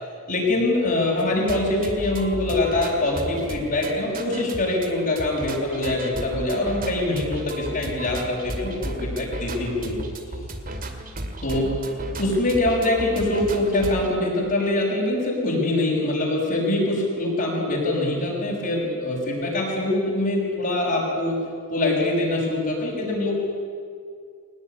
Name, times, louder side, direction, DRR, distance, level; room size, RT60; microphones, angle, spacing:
voice 1, 0.3-10.0 11.4-11.7 12.2-21.4 21.7-23.3, left 2 dB, 40° left, -6 dB, 6.1 m, -24 dB
sound 1, 1.2-14.1, right 1 dB, 40° right, 2.2 m, -34 dB
23.0 x 19.0 x 9.9 m, 2.2 s
head